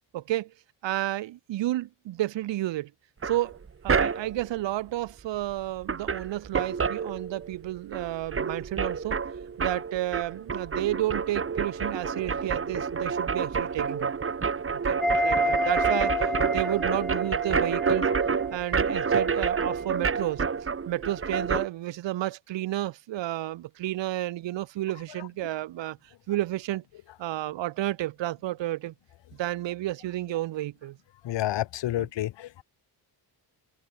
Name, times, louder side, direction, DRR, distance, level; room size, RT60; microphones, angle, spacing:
voice 1, 0.1-0.5 0.8-2.9 3.2-3.6 3.8-9.2 9.6-14.1 14.8-18.1 18.5-20.4 20.8-26.0 26.3-26.8 27.2-28.9 29.3-31.0 32.0-32.1, right 15 dB, 90° right, 3.4 m, -31 dB
sound 1, 3.2-4.5 5.5-5.6 5.8-7.7 7.9-21.7, right 5 dB, 30° right, 5.6 m, -28 dB
sound 2, 15.0-18.9 19.2-19.3, equal, ahead, 2.2 m, -29 dB
voice 2, 31.2-32.6, left 14 dB, 80° left, 3.4 m, -29 dB
cardioid pair, 145°, 42 cm